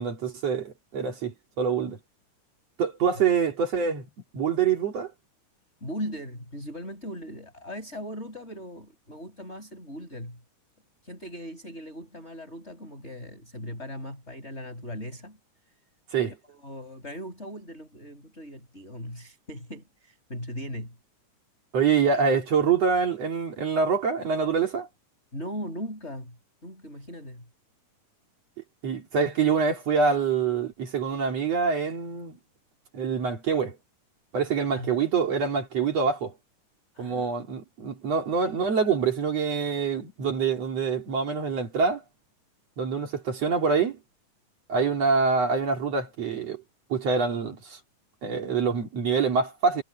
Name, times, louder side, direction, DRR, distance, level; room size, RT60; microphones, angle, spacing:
voice 1, 0.0-2.0 2.8-4.1 4.3-5.1 16.1-16.3 21.7-24.9 28.8-32.4 32.9-33.8 34.3-36.3 37.0-42.0 42.8-44.0 44.7-46.6 46.9-47.8 48.2-49.8, right 5 dB, 55° right, 3.6 m, -25 dB
voice 2, 5.8-10.4 11.0-15.4 16.2-21.0 25.3-26.4 26.6-27.5 34.7-34.9 36.9-37.3, equal, 20° left, 7.6 m, -39 dB
omnidirectional pair, 3.7 m